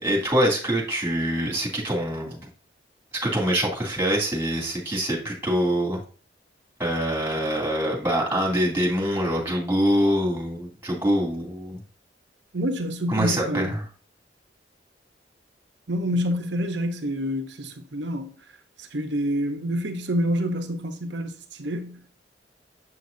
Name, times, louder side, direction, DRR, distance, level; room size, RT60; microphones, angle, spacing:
voice 1, 0.0-2.4 3.2-6.0 6.8-11.8 13.1-13.8, equal, 15° right, 2.6 m, -24 dB
voice 2, 12.5-13.8 15.9-18.3 18.8-22.0, equal, 75° right, 1.0 m, -27 dB
7.6 x 6.4 x 2.7 m
head